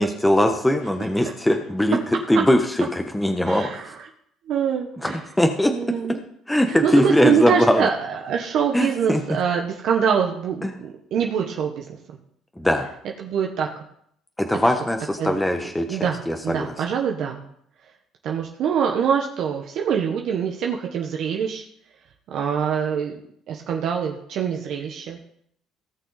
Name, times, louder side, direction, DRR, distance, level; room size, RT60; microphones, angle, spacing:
voice 1, 0.0-2.0 2.3-3.7 5.0-5.7 6.5-7.9 8.7-9.4 12.6-12.9 14.4-16.7, left 1 dB, 10° left, 4 dB, 1.3 m, -21 dB
voice 2, 3.5-4.0 4.5-5.2 5.7-6.2 6.7-12.0 13.2-13.8 15.2-15.5 15.9-17.4 18.2-21.6 22.3-23.2 23.5-25.2, right 7 dB, 65° right, 1 dB, 1.3 m, -24 dB
18.0 x 6.1 x 4.1 m, 0.70 s
supercardioid pair, 75°, 0 cm